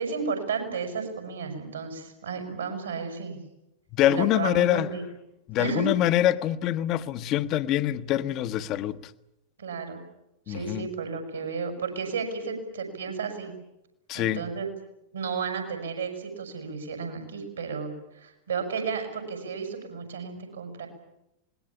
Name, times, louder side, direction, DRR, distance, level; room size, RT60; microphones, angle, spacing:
voice 1, 0.0-3.4 4.1-5.0 5.6-5.9 9.6-10.0 10.5-13.5 14.1-14.7 15.1-20.9, right 5 dB, 70° right, 6.6 m, -33 dB
voice 2, 3.9-4.9 5.5-9.1 10.5-10.9 14.1-14.4, left 12 dB, 35° left, 1.0 m, -25 dB
26.0 x 20.5 x 8.7 m
figure-of-eight pair, 90°, 0 cm